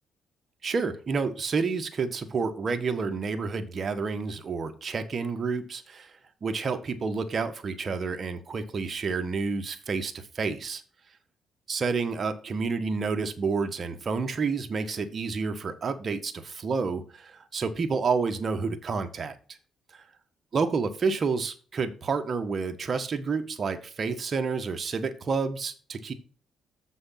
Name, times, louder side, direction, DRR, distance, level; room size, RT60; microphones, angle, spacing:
voice 1, 0.6-6.1 6.4-10.8 11.7-19.3 19.9-20.0 20.5-26.1, right 4 dB, 45° right, 8 dB, 1.4 m, -29 dB
7.2 x 6.2 x 5.8 m, 0.39 s
cardioid pair, 90°, 0 cm